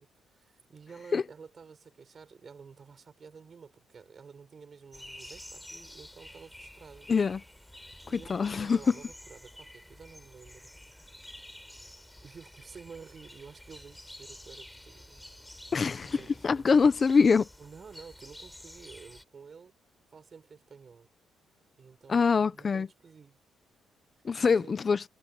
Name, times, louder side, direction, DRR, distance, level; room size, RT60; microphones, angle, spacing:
voice 1, 0.0-7.1 8.0-10.7 12.2-15.2 16.0-16.7 17.6-19.7 20.1-21.1 21.8-23.4 24.4-24.8, right 5 dB, 40° right, 7.2 m, -51 dB
sound 1, 4.9-19.2, left 1 dB, 5° left, 5.7 m, -50 dB
voice 2, 7.1-7.4 8.1-8.8 15.7-16.2 16.4-17.5 22.1-22.9 24.2-25.0, left 5 dB, 40° left, 1.0 m, -24 dB
cardioid pair, 90°, 0 cm